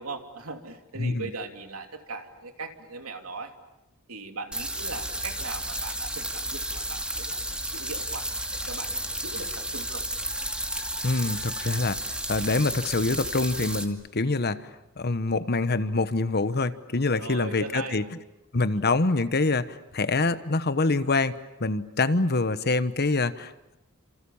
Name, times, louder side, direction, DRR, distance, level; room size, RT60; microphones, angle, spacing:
voice 1, 0.0-3.5 4.1-10.0 17.1-18.0, right 3 dB, 85° right, 5 dB, 3.0 m, -39 dB
sound 1, 4.5-13.8, right 1 dB, 5° right, 2.2 m, -32 dB
voice 2, 11.0-18.0 18.5-23.8, left 3 dB, 50° left, 13 dB, 1.2 m, -26 dB
29.5 x 27.5 x 7.2 m, 0.93 s
head